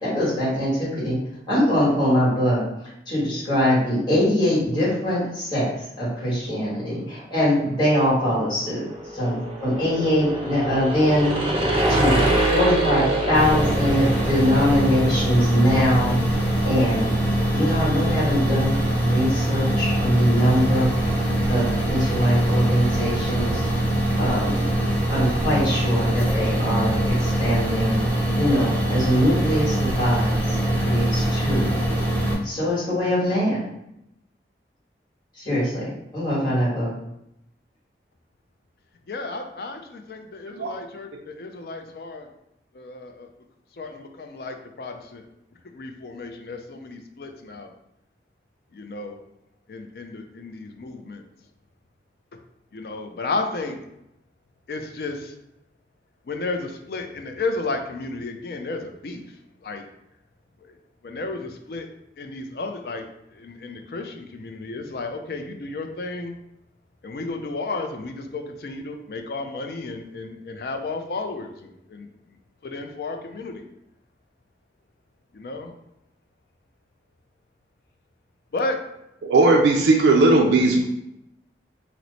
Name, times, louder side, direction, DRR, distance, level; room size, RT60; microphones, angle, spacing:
voice 1, 0.0-1.2 1.5-2.6 3.1-5.7 6.0-8.8 9.1-11.3 11.9-16.1 16.6-17.1 17.5-20.9 21.5-23.6 24.2-24.7 25.1-28.0 28.3-31.8 32.4-33.6 35.3-36.9, equal, 25° left, -9 dB, 1.4 m, -22 dB
sound 1, 8.4-15.3, right 1 dB, 30° right, 0.5 m, -25 dB
sound 2, 13.3-32.3, right 1 dB, 10° left, 0.8 m, -23 dB
voice 2, 39.1-42.3 42.7-43.3 43.8-45.2 45.6-47.7 48.7-49.2 49.7-51.2 52.7-53.8 54.7-55.3 56.3-59.8 60.6-60.8 61.0-61.9 62.2-66.4 67.0-72.1 72.6-73.6 75.3-75.7 78.5-78.8, left 3 dB, 60° left, 5 dB, 0.4 m, -33 dB
voice 3, 79.2-80.8, right 2 dB, 85° right, 0 dB, 0.3 m, -17 dB
3.0 x 2.0 x 3.9 m, 0.82 s
head